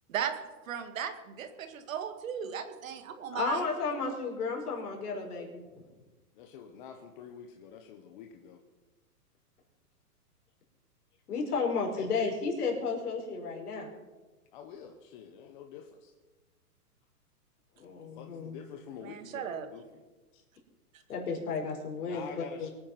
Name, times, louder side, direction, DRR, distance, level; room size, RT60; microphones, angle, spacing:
voice 1, 0.7-3.6 19.0-19.7, right 8 dB, 55° right, 8 dB, 2.2 m, -36 dB
voice 2, 3.3-5.6 11.3-13.9 17.8-18.6 21.1-22.7, left 4 dB, 70° left, 1 dB, 5.4 m, -33 dB
voice 3, 6.3-8.6 11.6-12.1 14.5-16.1 18.2-20.0 20.3-20.4 22.0-22.7, left 8 dB, 30° left, 4 dB, 1.2 m, -48 dB
23.5 x 9.6 x 5.9 m, 1.2 s
hypercardioid pair, 160°, 47 cm